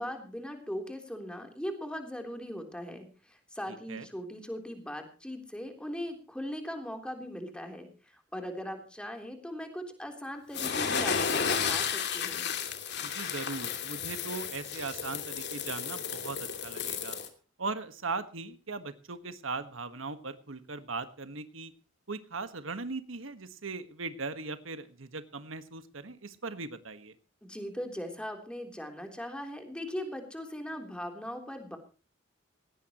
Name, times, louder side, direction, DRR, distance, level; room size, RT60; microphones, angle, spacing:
voice 1, 0.0-12.5 27.4-31.8, equal, 5° left, 4 dB, 3.5 m, -39 dB
voice 2, 3.7-4.1 13.0-17.2 17.6-21.7 22.1-27.2, right 3 dB, 85° right, 10 dB, 1.6 m, -39 dB
sound 1, 10.5-17.3, left 6 dB, 60° left, 2.7 m, -33 dB
19.0 x 17.0 x 3.0 m, 0.35 s
head